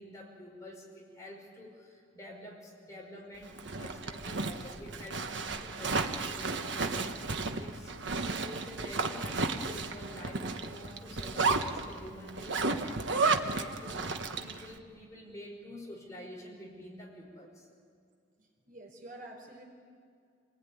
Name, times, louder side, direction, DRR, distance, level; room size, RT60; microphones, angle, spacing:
voice 1, 0.0-8.0 8.2-17.7, left 1 dB, 15° left, -2 dB, 5.2 m, -48 dB
Zipper (clothing), 3.4-14.7, right 3 dB, 75° right, 1.3 m, -33 dB
voice 2, 18.4-19.6, right 1 dB, 45° right, 1 dB, 4.4 m, -49 dB
27.5 x 19.5 x 9.6 m, 2.3 s
head